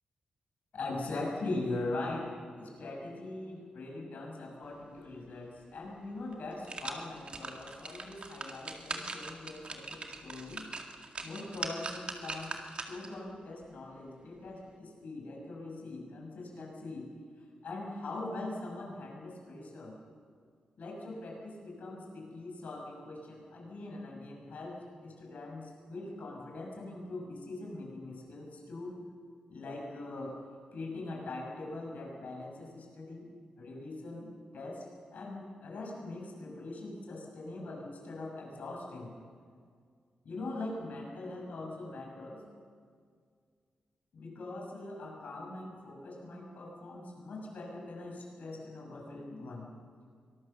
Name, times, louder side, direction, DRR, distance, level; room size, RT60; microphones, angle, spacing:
voice 1, 0.7-10.7 11.2-12.6 12.9-17.1 17.4-20.0 20.8-29.0 29.5-30.4 30.7-33.3 33.6-34.3 34.5-34.8 35.1-39.2 40.2-42.5 44.1-49.7, left 2 dB, 70° left, 0 dB, 6.3 m, -41 dB
sound 1, 5.8-5.9 6.3-13.2 13.6-13.7, right 3 dB, 40° right, 2.0 m, -41 dB
24.0 x 19.0 x 6.8 m, 2.1 s
wide cardioid pair, 110°, 3 cm